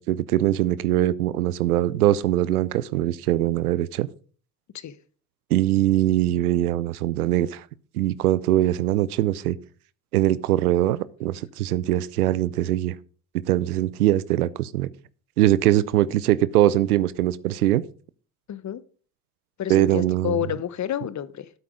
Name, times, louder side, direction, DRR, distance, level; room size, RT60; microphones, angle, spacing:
voice 1, 0.0-4.1 5.5-7.6 7.9-9.6 10.1-13.0 13.3-14.9 15.4-17.8 19.7-20.4, right 14 dB, 85° right, 0.6 m, -22 dB
voice 2, 18.5-18.8 19.6-21.5, left 10 dB, 40° left, 0.9 m, -29 dB
8.6 x 8.2 x 5.1 m
hypercardioid pair, 55°, 44 cm